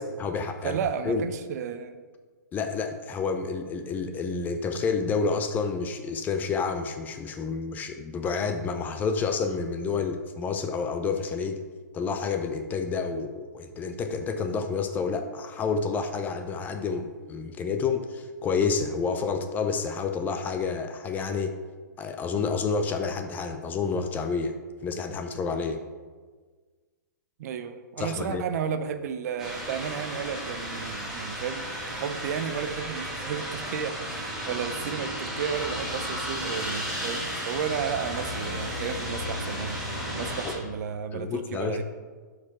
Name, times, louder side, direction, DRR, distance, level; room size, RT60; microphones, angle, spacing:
voice 1, 0.0-0.8 1.0-1.3 2.5-11.6 11.9-21.5 22.0-24.5 24.8-25.8 28.0-28.4 41.1-41.8, left 5 dB, 15° left, 7 dB, 0.5 m, -29 dB
voice 2, 0.6-2.0 27.4-39.8 40.1-41.8, right 7 dB, 55° right, 10 dB, 0.6 m, -33 dB
sound 1, 29.4-40.5, equal, 5° right, 2.1 m, -34 dB
11.5 x 4.8 x 3.7 m, 1.4 s
hypercardioid pair, 145°, 10 cm